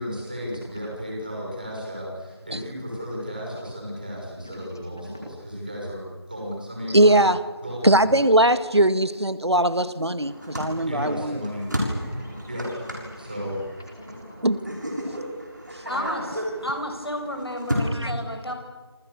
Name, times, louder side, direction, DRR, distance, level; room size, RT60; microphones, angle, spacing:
voice 1, 0.0-7.2 7.6-8.1 10.9-11.7 12.5-12.9 13.2-13.6, equal, 20° right, -2 dB, 6.2 m, -34 dB
voice 2, 4.4-5.2 9.7-11.0 12.1-12.4 12.8-13.6 14.0-14.4 15.8-16.2 17.8-17.9, equal, 10° left, -1 dB, 2.1 m, -43 dB
voice 3, 6.9-7.4 7.8-11.4 14.4-14.6 17.8-18.1, right 1 dB, 75° right, 13 dB, 2.0 m, -20 dB
sound 1, 10.2-17.9, equal, 45° right, 6.8 m, -33 dB
voice 4, 15.8-18.5, equal, 65° left, 4 dB, 7.0 m, -32 dB
27.5 x 27.5 x 7.0 m, 1.3 s
figure-of-eight pair, 175°, 14 cm